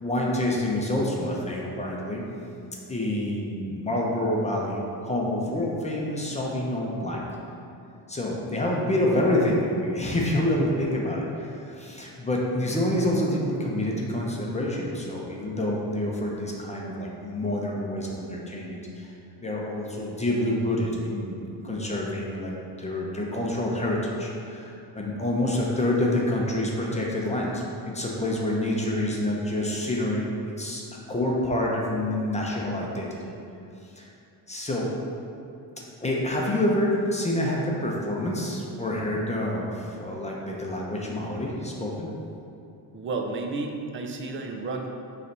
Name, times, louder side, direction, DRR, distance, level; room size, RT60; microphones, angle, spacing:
voice 1, 0.0-2.2 2.9-7.2 8.1-19.1 19.4-30.8 31.1-33.3 34.0-34.1 34.5-34.9 36.0-42.1, left 1 dB, 15° left, -3 dB, 0.7 m, -27 dB
voice 2, 42.9-44.9, right 3 dB, 30° right, 3 dB, 0.5 m, -32 dB
6.8 x 3.3 x 5.3 m, 2.6 s
cardioid pair, 155°, 44 cm